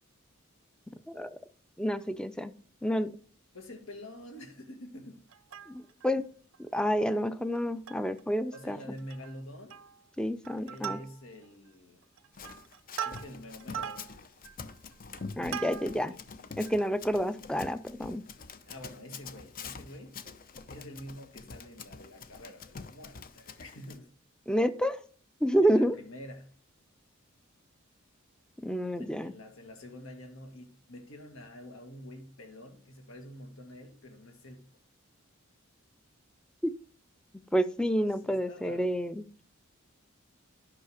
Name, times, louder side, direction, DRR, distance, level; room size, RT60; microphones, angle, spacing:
voice 1, 1.1-1.4 1.8-2.5 2.8-3.1 5.7-6.3 6.6-8.8 10.2-11.0 15.4-16.1 16.6-18.2 24.5-25.0 25.4-26.0 28.6-29.3 36.6-36.7 37.5-39.2, equal, 5° left, 0.5 m, -29 dB
voice 2, 3.5-5.2 8.5-9.8 10.6-12.0 13.0-14.1 16.1-16.2 18.7-20.2 20.7-24.1 25.6-26.5 29.0-34.7 38.0-39.0, left 1 dB, 75° left, 2.0 m, -47 dB
Plucked string instrument, 5.3-6.1 6.5-6.6 6.9-7.1 7.5-8.2 8.5-8.6 9.0-9.3 9.7-10.1 10.4-11.5 12.0-16.1 16.6-16.7, right 8 dB, 75° right, 0.7 m, -41 dB
Run, 12.3-24.0, left 5 dB, 45° left, 0.7 m, -46 dB
10.5 x 5.8 x 4.9 m
head